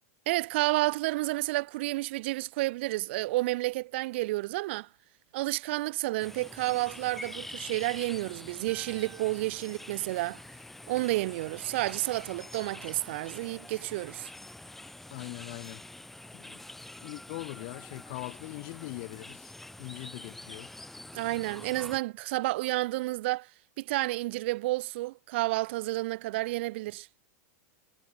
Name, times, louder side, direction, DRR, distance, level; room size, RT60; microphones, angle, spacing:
voice 1, 0.3-4.9 5.3-10.4 10.9-14.3 21.1-23.5 23.8-27.1, right 20 dB, 45° right, 0.7 m, -30 dB
sound 1, 6.2-22.0, left 2 dB, 5° left, 0.9 m, -46 dB
sound 2, 8.7-10.9, right 9 dB, 15° right, 2.6 m, -55 dB
voice 2, 15.1-15.8 16.3-16.6 17.0-19.5 19.8-20.8, left 29 dB, 35° left, 0.8 m, -41 dB
supercardioid pair, 180°, 8 cm